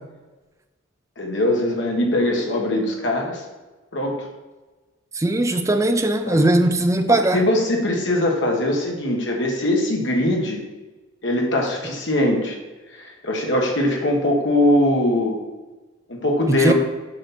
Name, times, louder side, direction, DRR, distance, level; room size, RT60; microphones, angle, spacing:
voice 1, 1.2-3.4 3.9-4.3 6.2-6.5 7.1-10.6 11.2-12.6 12.9-15.4 16.1-16.7, left 1 dB, 60° left, 1 dB, 1.5 m, -21 dB
voice 2, 5.1-7.4 11.8-11.9 16.5-16.7, right 1 dB, 15° right, 7 dB, 0.5 m, -19 dB
7.6 x 5.6 x 4.3 m, 1.2 s
head